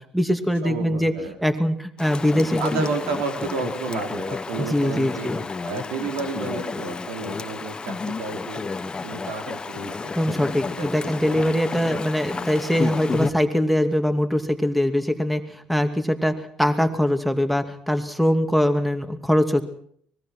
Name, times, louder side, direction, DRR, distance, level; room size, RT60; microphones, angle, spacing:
voice 1, 0.0-1.1 1.4-2.9 4.6-5.4 10.2-19.6, equal, ahead, 8 dB, 2.5 m, -22 dB
voice 2, 0.6-1.3 2.6-5.3 5.6-8.7 9.0-9.9 10.3-10.4 10.8-11.5, right 4 dB, 85° right, 5 dB, 4.3 m, -31 dB
Chatter / Stream, 2.0-13.3, left 4 dB, 30° left, 1.2 m, -31 dB
24.5 x 20.5 x 6.2 m, 0.64 s
supercardioid pair, 70°, 3 cm